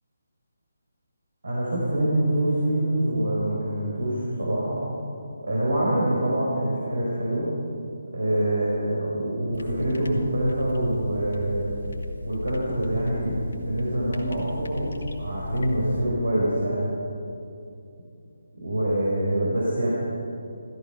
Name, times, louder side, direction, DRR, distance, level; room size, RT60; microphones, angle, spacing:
voice 1, 1.4-4.8 5.4-7.5 8.1-11.7 12.2-16.9 18.6-19.9, right 1 dB, 75° right, -5 dB, 4.3 m, -25 dB
sound 1, 9.5-16.1, left 1 dB, 70° left, 1.9 m, -36 dB
15.5 x 14.5 x 5.7 m, 2.6 s
figure-of-eight pair, 150°, 0 cm